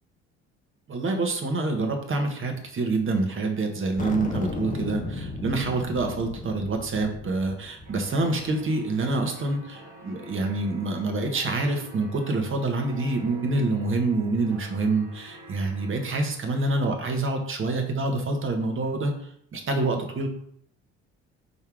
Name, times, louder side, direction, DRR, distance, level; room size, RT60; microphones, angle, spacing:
voice 1, 0.9-19.1 19.5-20.3, right 2 dB, 35° right, 4 dB, 1.5 m, -26 dB
sound 1, 4.0-8.7, left 3 dB, 25° left, 1.1 m, -35 dB
sound 2, 7.8-16.2, equal, 85° right, 1.3 m, -47 dB
5.5 x 3.6 x 4.8 m, 0.67 s
hypercardioid pair, 55°, 34 cm